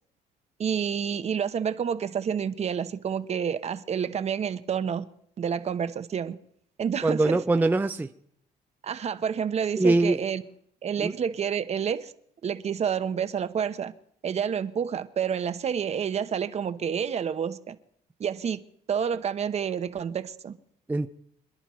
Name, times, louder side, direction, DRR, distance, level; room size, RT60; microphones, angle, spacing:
voice 1, 0.6-5.0 5.4-6.4 6.8-7.4 8.8-10.4 10.8-12.1 12.4-13.9 14.2-17.8 18.2-18.6 18.9-20.5, right 7 dB, 40° right, 0.8 m, -29 dB
voice 2, 7.0-8.1 9.8-10.2 11.0-11.1 20.9-21.1, right 2 dB, 10° right, 0.5 m, -23 dB
26.5 x 11.0 x 3.1 m
cardioid pair, 110°, 17 cm